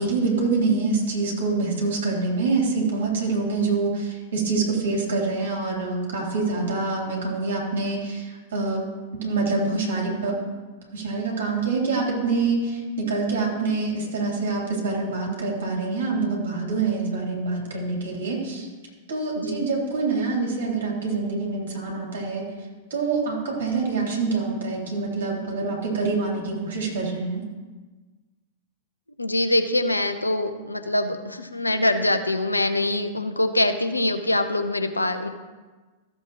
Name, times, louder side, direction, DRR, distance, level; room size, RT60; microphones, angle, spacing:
voice 1, 0.0-8.8 9.2-10.4 10.9-18.7 19.1-22.5 22.9-27.4, right 3 dB, 60° right, -2 dB, 3.2 m, -25 dB
voice 2, 19.4-19.7 29.2-35.3, left 1 dB, 85° left, 8 dB, 0.8 m, -24 dB
14.5 x 7.6 x 3.1 m, 1.3 s
figure-of-eight pair, 95°, 0 cm